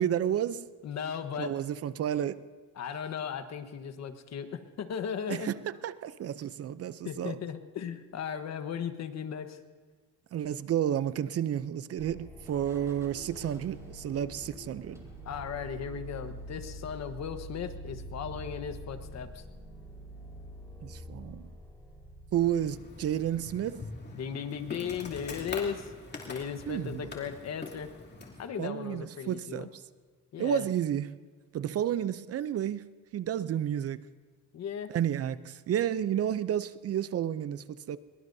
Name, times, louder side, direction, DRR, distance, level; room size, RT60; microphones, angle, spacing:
voice 1, 0.0-0.7 1.4-2.4 5.3-7.4 10.3-15.1 20.8-21.5 22.3-23.8 26.7-27.1 28.6-29.8 30.4-31.2 31.5-34.1 34.9-38.0, right 10 dB, 50° right, 0.6 m, -31 dB
voice 2, 0.8-1.5 2.8-5.5 7.0-9.6 15.2-19.4 24.1-25.9 26.3-27.9 28.4-29.7 30.3-30.7 34.5-34.9, left 7 dB, 55° left, 1.3 m, -36 dB
sound 1, 11.1-11.8 12.5-17.4, right 1 dB, 10° right, 3.6 m, -57 dB
sound 2, 12.0-23.5, equal, 10° left, 4.2 m, -46 dB
Insect, 22.3-28.5, left 3 dB, 35° left, 2.9 m, -44 dB
23.0 x 22.0 x 2.7 m
cardioid pair, 105°, 32 cm